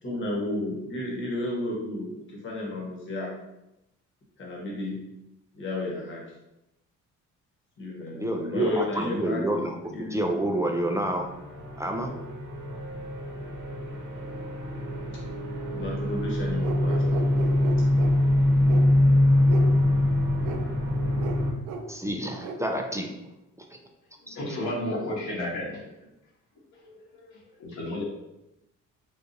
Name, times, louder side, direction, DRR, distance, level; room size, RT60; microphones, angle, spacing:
voice 1, 0.0-3.3 4.4-5.0 5.5-6.2 7.8-10.2 15.1-15.2 15.7-17.3, left 1 dB, 40° left, -3 dB, 1.1 m, -32 dB
voice 2, 8.1-9.8 10.1-11.3 11.8-12.1 21.9-23.2 23.6-23.7 24.3-24.4, right 1 dB, 10° right, 2 dB, 0.3 m, -28 dB
sound 1, 10.6-21.5, left 1 dB, 40° right, 0.9 m, -24 dB
sound 2, 16.6-18.1 18.7-18.9 19.5-19.7 20.4-20.6 21.2-21.4 21.7-21.9 22.4-22.6, right 4 dB, 85° right, 0.5 m, -35 dB
voice 3, 24.2-26.1 26.7-28.0, left 1 dB, 70° left, -3 dB, 1.2 m, -33 dB
4.0 x 2.4 x 2.6 m, 0.91 s
cardioid pair, 90°, 30 cm